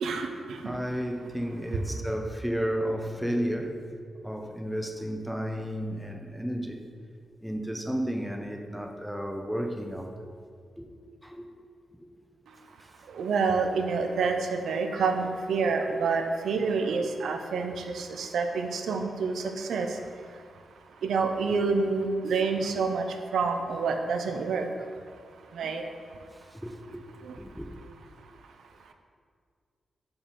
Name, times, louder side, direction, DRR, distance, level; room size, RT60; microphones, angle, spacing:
voice 1, 0.0-0.8 13.2-19.9 21.0-23.1 23.3-24.7 25.6-25.8, right 4 dB, 85° right, 0.5 m, -28 dB
voice 2, 0.6-3.8 4.2-6.8 7.4-10.1 10.8-10.9 11.2-11.4 12.0-12.1 12.8-12.9 26.3-27.7, equal, ahead, 0.4 m, -33 dB
5.7 x 5.1 x 4.2 m
wide cardioid pair, 170°, 0 cm